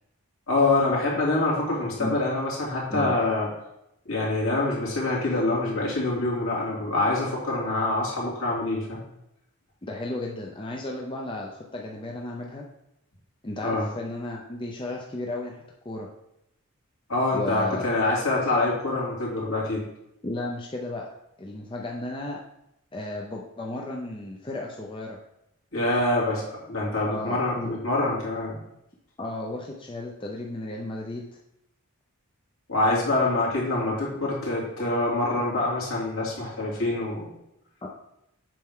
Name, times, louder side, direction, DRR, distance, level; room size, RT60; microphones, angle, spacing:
voice 1, 0.5-3.5 4.0-9.0 13.6-13.9 17.1-19.8 25.7-28.6 32.7-37.3, left 2 dB, 65° left, -5 dB, 2.7 m, -25 dB
voice 2, 9.8-12.7 13.4-16.1 17.3-18.2 20.2-21.1 21.4-22.4 22.9-25.2 27.1-27.7 29.2-31.3 37.8-37.9, left 2 dB, 20° left, -1 dB, 0.6 m, -34 dB
7.5 x 5.7 x 3.7 m, 0.84 s
head